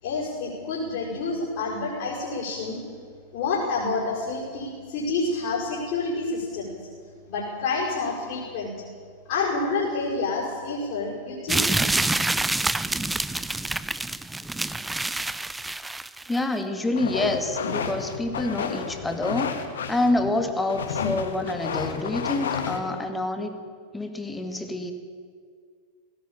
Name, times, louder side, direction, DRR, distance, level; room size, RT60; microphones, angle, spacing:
voice 1, 0.0-2.8 3.3-6.8 7.3-8.7 9.2-11.7, left 3 dB, 50° left, -5 dB, 5.7 m, -28 dB
sound 1, 11.5-16.4, right 2 dB, 5° right, 0.7 m, -27 dB
voice 2, 16.3-23.6 23.9-24.9, left 2 dB, 10° left, 7 dB, 2.2 m, -27 dB
sound 2, 17.0-22.8, left 6 dB, 65° left, 2.0 m, -31 dB
18.5 x 17.0 x 8.9 m, 2.1 s
figure-of-eight pair, 90°, 0 cm